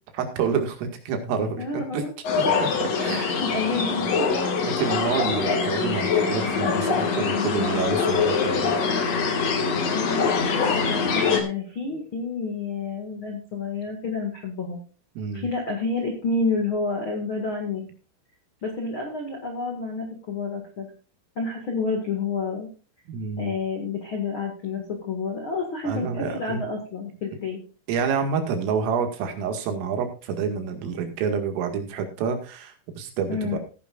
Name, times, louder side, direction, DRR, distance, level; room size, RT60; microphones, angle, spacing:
voice 1, 0.1-2.0 2.3-2.7 3.0-3.4 4.7-8.7 15.2-15.4 23.1-23.5 25.8-26.6 27.9-33.6, right 6 dB, 80° right, 5 dB, 4.5 m, -28 dB
voice 2, 1.6-2.1 3.1-4.2 9.8-14.8 15.3-17.8 18.6-20.9 21.3-22.7 23.4-27.6 33.3-33.6, left 4 dB, 90° left, 2 dB, 1.1 m, -29 dB
sound 1, 2.2-11.4, left 5 dB, 65° left, 1.6 m, -24 dB
17.5 x 9.8 x 2.5 m, 0.35 s
omnidirectional pair, 5.9 m